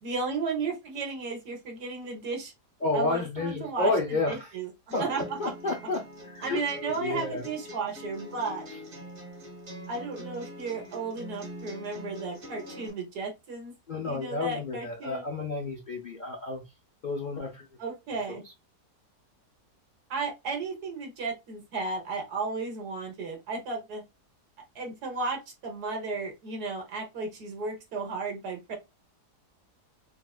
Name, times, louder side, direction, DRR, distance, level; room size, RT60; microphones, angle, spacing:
voice 1, 0.0-2.5 2.9-4.7 5.0-5.5 6.4-8.7 9.9-13.7 14.0-15.2 17.8-18.4 20.1-24.0 24.7-28.8, right 4 dB, 70° right, 1.6 m, -34 dB
voice 2, 2.8-4.5 4.9-5.0 5.4-7.5 13.9-16.6 17.0-17.6 18.3-18.4, left 3 dB, 55° left, 0.5 m, -31 dB
sound 1, 4.9-12.9, equal, 45° right, 1.6 m, -43 dB
4.0 x 2.4 x 2.3 m
omnidirectional pair, 1.7 m